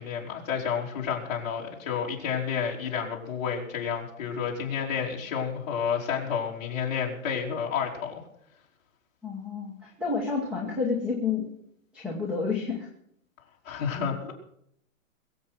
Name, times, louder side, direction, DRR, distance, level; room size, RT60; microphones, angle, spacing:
voice 1, 0.0-8.2 13.6-14.3, left 7 dB, 30° left, -2 dB, 3.4 m, -30 dB
voice 2, 9.2-11.5 11.9-12.9, left 5 dB, ahead, -1 dB, 1.1 m, -29 dB
22.0 x 8.2 x 5.9 m, 0.72 s
hypercardioid pair, 175°, 41 cm